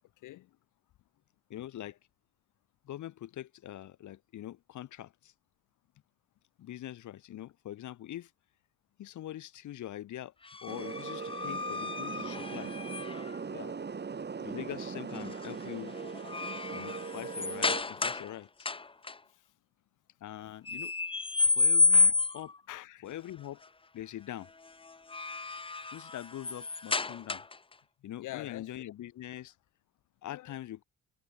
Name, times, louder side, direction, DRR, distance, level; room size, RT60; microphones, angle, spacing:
voice 1, 0.2-0.6 13.5-13.8 21.4-21.6 21.9-22.1 22.7-23.0 28.2-28.7 30.3-30.5, left 16 dB, 90° left, 2.2 m, -45 dB
voice 2, 1.5-2.0 2.8-5.3 6.6-8.3 9.0-10.3 10.6-12.7 14.4-16.0 16.7-18.7 20.2-20.9 21.6-22.5 23.0-23.7 23.9-24.5 25.9-27.4 28.0-29.5 30.2-30.8, left 12 dB, 75° left, 2.2 m, -43 dB
sound 1, 10.5-13.4 15.1-15.5 15.9-18.3 18.6-19.1 20.7-22.6 24.9-27.7, left 3 dB, 15° left, 1.0 m, -30 dB
sound 2, 10.7-17.8, right 5 dB, 35° right, 3.2 m, -40 dB
cardioid pair, 90°, 30 cm